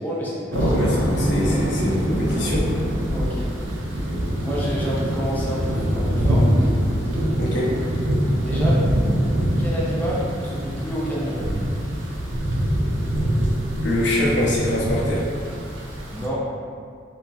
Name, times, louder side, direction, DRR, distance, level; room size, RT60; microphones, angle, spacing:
voice 1, 0.0-0.7 3.1-3.5 4.4-6.5 8.4-8.8 9.6-11.6 16.1-16.4, equal, 10° left, -7 dB, 0.4 m, -29 dB
voice 2, 0.5-2.7 7.4-7.8 13.8-15.3, left 1 dB, 65° left, -4 dB, 0.6 m, -24 dB
sound 1, 0.5-16.3, equal, 90° right, 0.5 m, -23 dB
2.3 x 2.0 x 3.8 m, 2.2 s
head